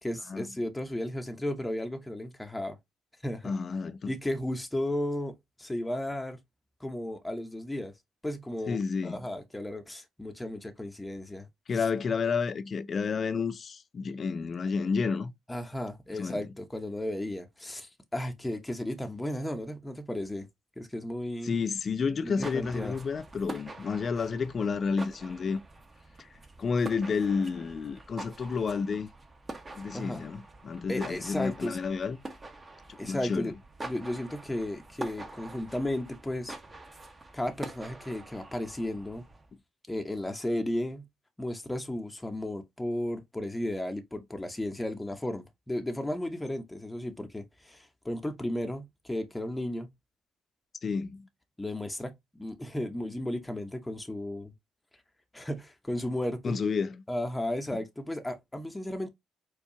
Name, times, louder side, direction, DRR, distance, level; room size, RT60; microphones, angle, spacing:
voice 1, 0.0-2.8 3.2-3.5 4.1-6.4 6.8-7.9 8.2-8.8 9.0-11.5 15.5-20.5 20.8-21.5 22.2-23.0 29.9-30.2 30.9-31.8 33.0-33.5 33.8-36.6 37.3-39.2 39.9-41.1 41.4-49.9 51.6-54.5 55.3-56.6 57.1-59.1, left 1 dB, 10° left, 0.7 m, -34 dB
voice 2, 3.4-4.1 8.7-9.2 11.7-15.3 16.2-16.5 21.4-25.6 26.2-26.3 26.6-29.1 29.8-32.2 33.0-33.5 50.8-51.3 56.4-57.0, left 5 dB, 50° left, 0.5 m, -30 dB
sound 1, 22.2-39.5, right 2 dB, 30° right, 1.0 m, -45 dB
4.5 x 2.3 x 2.8 m
supercardioid pair, 65°, 0 cm